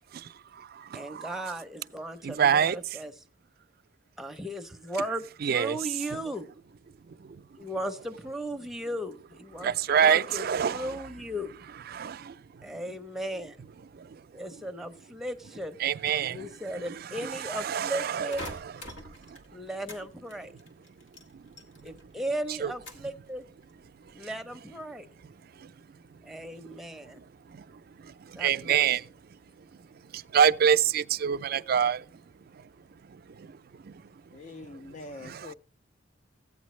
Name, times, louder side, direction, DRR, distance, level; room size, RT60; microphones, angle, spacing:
voice 1, 0.1-1.5 2.2-2.8 5.4-5.8 7.2-7.4 9.6-10.9 11.9-12.3 13.9-14.2 15.8-16.5 17.2-18.6 19.3-19.4 21.3-21.4 22.6-22.7 25.6-25.7 27.2-27.3 27.5-29.0 30.1-32.0 32.5-32.6 33.1-33.6 33.8-34.0 35.2-35.5, right 8 dB, 50° right, 0.4 m, -27 dB
voice 2, 0.9-3.2 4.2-6.5 7.6-9.7 10.0-11.5 12.6-13.6 14.3-15.8 16.3-18.4 19.5-20.5 21.8-23.4 24.1-25.1 26.2-27.2 28.4-28.8, equal, ahead, 0.7 m, -36 dB
sound 1, 18.3-20.0 20.3-22.1 22.3-23.2 23.6-24.1, left 1 dB, 80° left, 1.8 m, -45 dB
voice 3, 34.3-35.5, left 3 dB, 40° left, 0.4 m, -44 dB
14.5 x 8.9 x 3.1 m
head